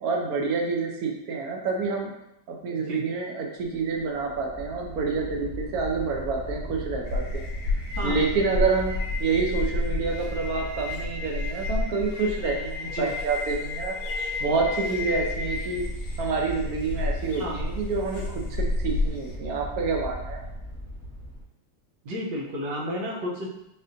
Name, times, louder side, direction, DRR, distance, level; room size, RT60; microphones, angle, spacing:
voice 1, 0.0-2.1 2.5-7.4 8.0-8.9 9.2-13.9 14.4-15.8 16.2-18.2 18.5-20.4, right 4 dB, 70° right, 0 dB, 0.9 m, -28 dB
sound 1, 3.6-21.4, equal, 35° right, 0.7 m, -38 dB
sound 2, 7.1-19.3, left 2 dB, 70° left, 0.9 m, -31 dB
voice 2, 22.0-23.5, equal, 90° right, -3 dB, 1.5 m, -31 dB
4.2 x 2.5 x 2.5 m, 0.85 s
omnidirectional pair, 1.9 m